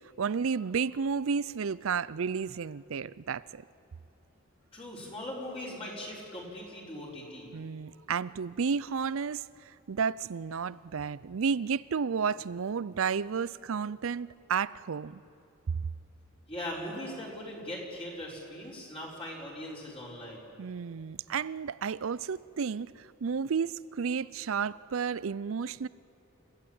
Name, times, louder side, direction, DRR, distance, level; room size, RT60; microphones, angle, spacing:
voice 1, 0.2-3.6 7.5-15.2 20.6-25.9, right 6 dB, 65° right, 0.5 m, -32 dB
voice 2, 4.7-7.5 16.5-20.5, left 1 dB, 25° left, 4.9 m, -40 dB
29.5 x 15.0 x 8.9 m
head